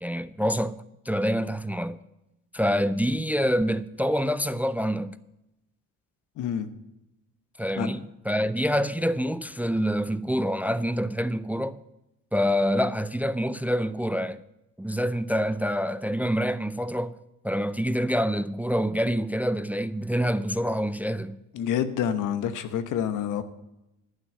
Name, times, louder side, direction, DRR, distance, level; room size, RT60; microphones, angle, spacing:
voice 1, 0.0-2.0 2.5-5.2 7.6-11.8 12.3-14.4 14.8-17.2 17.4-21.4, equal, 5° right, 0.4 m, -26 dB
voice 2, 6.4-6.7 7.8-7.9 21.5-23.4, left 9 dB, 85° left, 1.0 m, -27 dB
11.0 x 6.1 x 8.8 m
cardioid pair, 90°, 30 cm